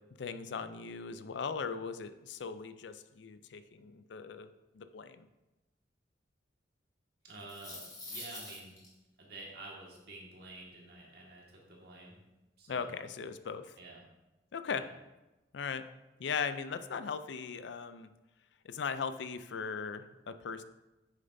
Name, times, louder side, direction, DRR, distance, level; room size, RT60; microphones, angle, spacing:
voice 1, 0.2-5.3 12.7-13.8 14.5-14.9 15.5-15.8 16.2-18.1 18.6-20.6, left 5 dB, 70° left, 11 dB, 0.4 m, -39 dB
voice 2, 7.2-8.8 9.2-12.2 12.6-13.0 13.8-14.0 14.7-14.9, right 2 dB, 55° right, -2 dB, 1.8 m, -49 dB
sound 1, 7.3-8.9, left 2 dB, 20° left, 2.4 m, -45 dB
9.0 x 6.6 x 2.7 m, 1.0 s
head